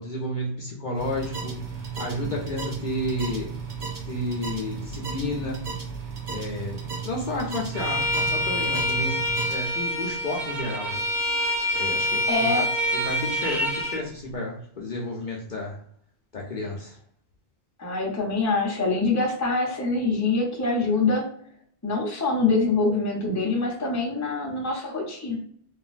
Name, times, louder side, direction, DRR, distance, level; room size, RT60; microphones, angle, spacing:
voice 1, 0.0-3.5 4.0-5.7 6.3-11.0 11.7-12.7 12.9-15.8 16.3-17.0, left 1 dB, 55° left, -2 dB, 0.7 m, -32 dB
sound 1, 0.9-9.5, right 5 dB, 50° right, 0.9 m, -34 dB
Bowed string instrument, 7.7-14.0, left 1 dB, 70° right, 1.7 m, -26 dB
voice 2, 12.3-12.7 17.8-21.3 21.8-25.4, left 3 dB, 20° left, -1 dB, 0.6 m, -24 dB
3.0 x 2.4 x 2.4 m, 0.62 s
omnidirectional pair, 1.1 m